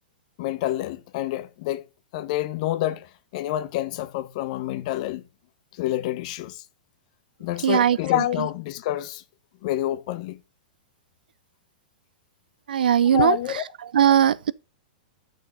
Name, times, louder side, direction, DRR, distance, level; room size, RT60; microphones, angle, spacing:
voice 1, 0.4-1.8 2.1-5.2 5.7-6.6 7.4-9.2 9.6-10.4 13.1-13.6, left 14 dB, 50° left, 0.7 m, -28 dB
voice 2, 7.6-8.0 12.7-13.4 13.9-14.5, right 9 dB, 85° right, 0.4 m, -18 dB
6.4 x 4.4 x 5.2 m
hypercardioid pair, 130°, 5 cm